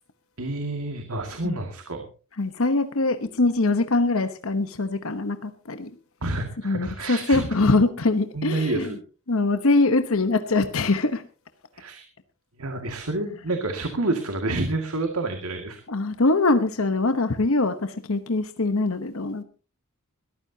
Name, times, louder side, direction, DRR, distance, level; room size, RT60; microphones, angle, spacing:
voice 1, 0.4-2.1 6.2-7.5 8.3-9.0 11.7-12.1 12.6-15.8, right 2 dB, 75° right, 5 dB, 2.2 m, -28 dB
voice 2, 2.4-5.9 6.6-8.9 9.3-11.2 15.9-19.4, left 3 dB, 65° left, 9 dB, 1.1 m, -23 dB
21.0 x 14.0 x 2.8 m, 0.35 s
head